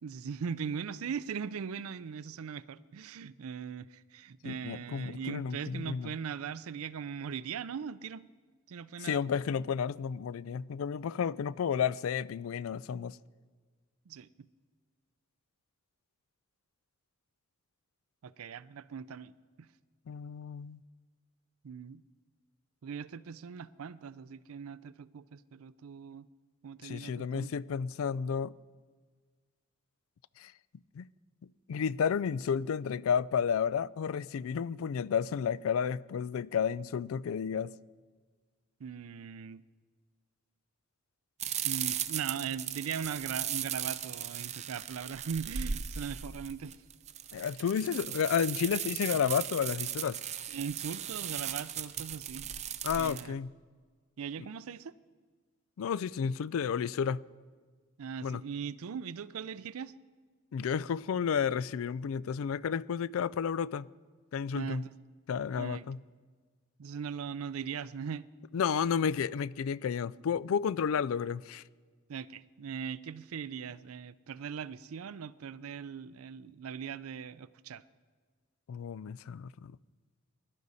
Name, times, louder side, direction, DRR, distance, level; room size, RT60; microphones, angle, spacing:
voice 1, 0.0-8.3 8.7-9.2 14.1-14.5 18.2-19.7 21.6-22.0 22.8-26.3 26.6-27.5 38.8-39.6 41.6-46.8 50.5-52.5 53.0-53.3 54.2-54.9 58.0-59.9 64.5-64.9 65.5-65.9 66.8-68.3 72.1-77.8, right 7 dB, 80° right, 0.4 m, -40 dB
voice 2, 4.4-6.1 9.0-13.2 20.1-20.8 26.8-28.5 30.4-30.5 30.9-31.1 31.7-37.7 47.3-50.2 52.8-53.5 55.8-57.2 58.2-58.4 60.5-63.9 64.3-64.8 65.3-66.0 68.5-71.6 78.7-79.8, left 7 dB, 70° left, 0.3 m, -32 dB
sound 1, 41.4-53.2, right 9 dB, 30° right, 0.5 m, -37 dB
20.5 x 12.0 x 4.1 m
head